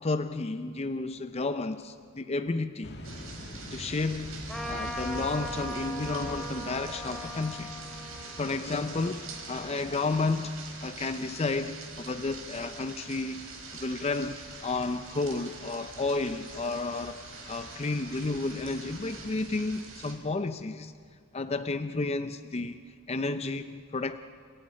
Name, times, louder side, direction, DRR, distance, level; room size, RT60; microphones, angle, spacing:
voice 1, 0.0-3.0 3.7-4.4 4.6-7.8 8.4-17.2 17.5-20.9 21.3-22.8 23.1-24.2, left 3 dB, 30° left, 0.5 m, -32 dB
sound 1, 2.8-19.3, left 1 dB, 55° left, 2.3 m, -49 dB
sound 2, 3.0-20.1, right 3 dB, 85° right, 4.6 m, -44 dB
Trumpet, 4.5-10.3, equal, ahead, 2.5 m, -40 dB
29.5 x 15.5 x 9.8 m
head